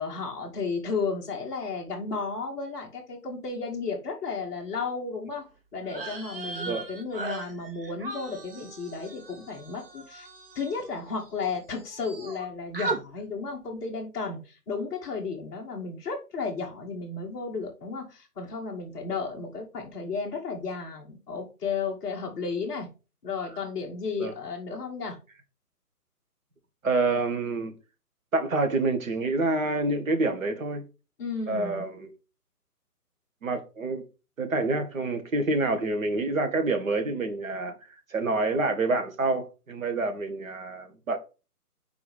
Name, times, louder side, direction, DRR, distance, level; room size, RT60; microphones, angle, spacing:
voice 1, 0.0-5.4 5.7-10.3 10.5-22.9 23.2-25.2 31.2-31.8, left 4 dB, 5° left, 1.0 m, -33 dB
sound 1, 5.8-11.5 11.7-12.4 12.7-13.0, right 3 dB, 35° right, 1.3 m, -38 dB
voice 2, 26.8-27.7 28.3-30.8 31.5-32.1 33.4-34.0 34.4-41.2, right 3 dB, 60° right, 1.8 m, -27 dB
4.9 x 4.7 x 5.4 m
figure-of-eight pair, 155°, 46 cm